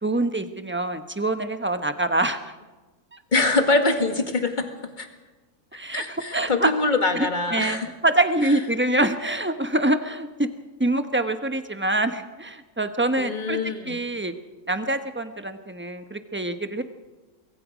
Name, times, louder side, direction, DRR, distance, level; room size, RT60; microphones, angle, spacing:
voice 1, 0.0-2.4 3.1-3.2 5.7-6.7 7.1-10.5 10.8-14.3 14.7-16.8, right 2 dB, 10° right, 8 dB, 1.0 m, -25 dB
voice 2, 3.3-4.7 5.0-5.1 5.9-7.9 13.2-14.0, left 3 dB, 35° left, 5 dB, 2.1 m, -23 dB
24.0 x 22.5 x 5.1 m, 1.2 s
omnidirectional pair, 1.4 m